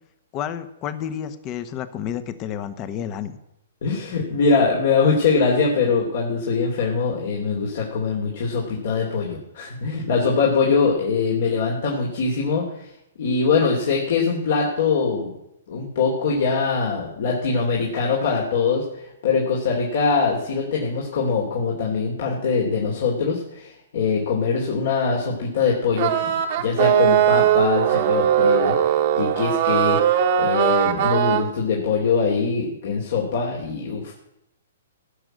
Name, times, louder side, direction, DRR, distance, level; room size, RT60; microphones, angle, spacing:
voice 1, 0.3-3.4, left 9 dB, 30° left, 12 dB, 1.2 m, -30 dB
voice 2, 3.8-12.9 13.2-15.3 15.7-18.8 19.2-26.3 26.6-28.7 29.2-30.0 30.4-34.1, left 5 dB, 60° left, -3 dB, 2.9 m, -22 dB
sound 1, 26.0-31.4, right 10 dB, 50° right, 1.4 m, -19 dB
16.5 x 6.1 x 7.9 m, 0.85 s
hypercardioid pair, 130°, 0 cm